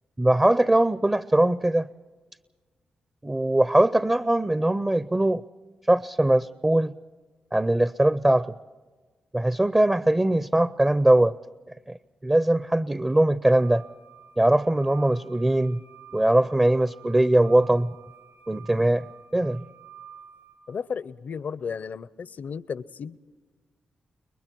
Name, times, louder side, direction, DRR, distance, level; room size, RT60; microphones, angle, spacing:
voice 1, 0.2-1.9 3.2-5.4 5.9-6.9 7.5-8.5 9.3-11.4 11.9-12.0 12.2-13.8 14.4-15.8 16.1-17.9 18.5-19.0 19.3-19.6, right 1 dB, 20° right, 17 dB, 0.6 m, -21 dB
sound 1, 13.4-20.5, right 8 dB, 80° right, 6.2 m, -49 dB
voice 2, 20.7-23.2, left 6 dB, 60° left, 19 dB, 0.7 m, -34 dB
30.0 x 22.5 x 4.6 m, 1.3 s
supercardioid pair, 45°, 3 cm